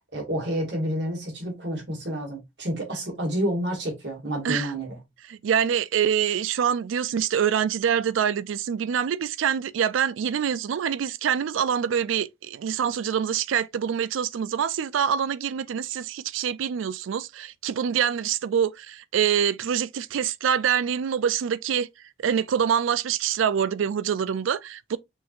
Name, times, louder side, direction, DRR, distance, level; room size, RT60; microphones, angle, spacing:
voice 1, 0.1-5.0, equal, 60° right, 2.1 m, -29 dB
voice 2, 5.3-21.9 22.2-25.0, right 8 dB, 90° right, 0.4 m, -25 dB
6.3 x 2.9 x 2.5 m
head